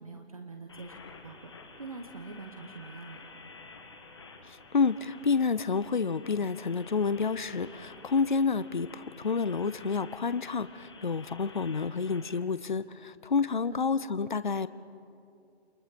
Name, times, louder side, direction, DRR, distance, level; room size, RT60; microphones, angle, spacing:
voice 1, 0.0-3.2 13.6-13.8, right 3 dB, 35° right, 5 dB, 1.1 m, -45 dB
sound 1, 0.7-12.4, left 3 dB, 25° left, 1.4 m, -51 dB
voice 2, 4.7-14.7, left 5 dB, 45° left, 15 dB, 0.6 m, -29 dB
29.0 x 24.5 x 5.2 m, 2.5 s
hypercardioid pair, 180°, 33 cm